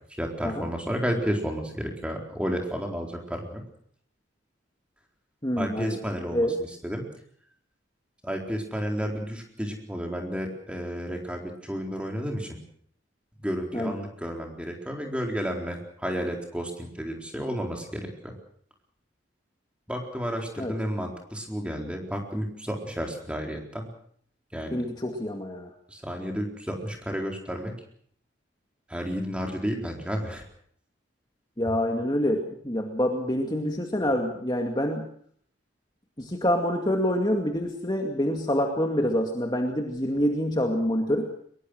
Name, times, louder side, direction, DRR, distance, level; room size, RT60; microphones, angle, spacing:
voice 1, 0.2-3.6 5.6-7.1 8.2-12.6 13.4-18.4 19.9-23.9 24.5-24.8 25.9-27.7 28.9-30.5, equal, 5° right, 2 dB, 4.2 m, -32 dB
voice 2, 5.4-6.0 6.3-6.5 13.7-14.0 20.6-20.7 24.7-25.7 31.6-35.0 36.2-41.3, equal, 20° left, 3 dB, 2.2 m, -26 dB
23.0 x 22.0 x 6.4 m, 0.62 s
head